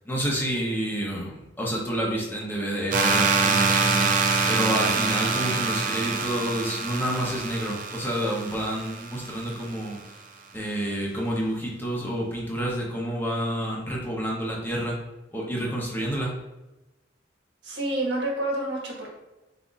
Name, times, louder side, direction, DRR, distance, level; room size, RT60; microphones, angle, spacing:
voice 1, 0.0-4.1 4.5-10.0 10.5-15.0 15.3-16.4, equal, 10° left, -3 dB, 0.8 m, -29 dB
sound 1, 2.9-9.7, right 4 dB, 50° right, 0.5 m, -25 dB
voice 2, 17.6-19.1, right 1 dB, 75° right, -2 dB, 1.3 m, -28 dB
4.1 x 4.0 x 2.4 m, 1.0 s
head